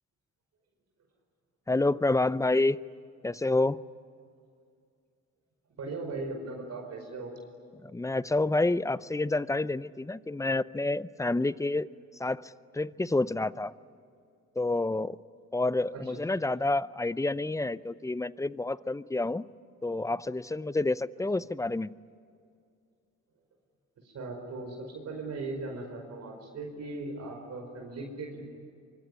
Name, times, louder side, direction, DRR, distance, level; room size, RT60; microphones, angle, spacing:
voice 1, 1.7-2.8 3.2-3.8 7.8-11.9 12.2-13.7 14.6-15.2 15.5-19.5 19.8-21.9, left 2 dB, 10° left, 17 dB, 0.6 m, -28 dB
voice 2, 5.8-7.3 15.9-16.2 24.0-28.4, right 3 dB, 60° right, 2 dB, 5.1 m, -38 dB
24.5 x 24.0 x 10.0 m, 2.3 s
cardioid pair, 90°, 30 cm